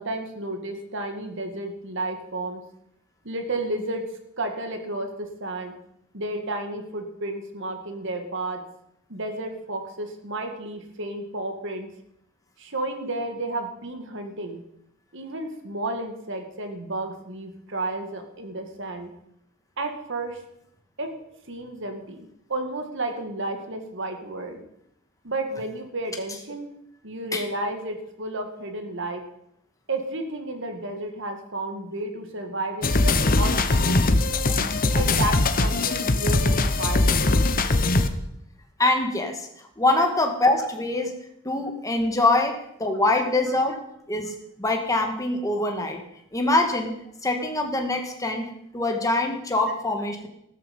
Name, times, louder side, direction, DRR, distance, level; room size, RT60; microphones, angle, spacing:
voice 1, 0.0-2.6 3.2-4.0 4.4-5.8 6.1-8.6 9.1-11.9 12.6-14.6 15.1-19.1 19.8-20.4 21.0-21.1 21.5-24.6 25.2-26.7 27.0-29.2 29.9-34.2 34.9-37.3, right 2 dB, 60° right, 5 dB, 2.2 m, -32 dB
sound 1, 32.8-38.1, left 2 dB, 40° left, 1.0 m, -21 dB
voice 2, 38.8-39.5 39.8-41.1 41.4-43.8 44.1-46.0 46.3-47.0 47.2-50.3, left 2 dB, 15° left, 3 dB, 2.0 m, -24 dB
14.5 x 13.5 x 5.5 m, 0.75 s
head